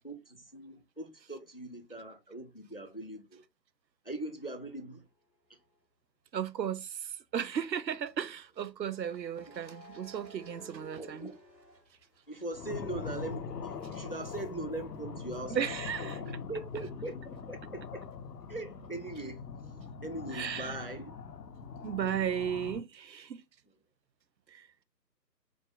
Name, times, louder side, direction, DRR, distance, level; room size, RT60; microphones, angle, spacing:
voice 1, 0.0-3.4 4.0-5.0 9.5-9.6 10.8-11.4 12.3-18.0 18.5-19.5 20.0-21.1, right 2 dB, 40° left, 0.4 m, -41 dB
sound 1, 5.5-5.7 8.8-12.7 13.1-16.7, right 1 dB, 10° right, 0.8 m, -56 dB
voice 2, 6.3-11.3 15.5-16.2 20.3-20.8 21.8-23.4 24.5-24.7, right 8 dB, 80° right, 0.6 m, -35 dB
sound 2, 12.5-22.8, left 5 dB, 70° left, 0.8 m, -42 dB
4.9 x 2.1 x 3.6 m
figure-of-eight pair, 150°, 50 cm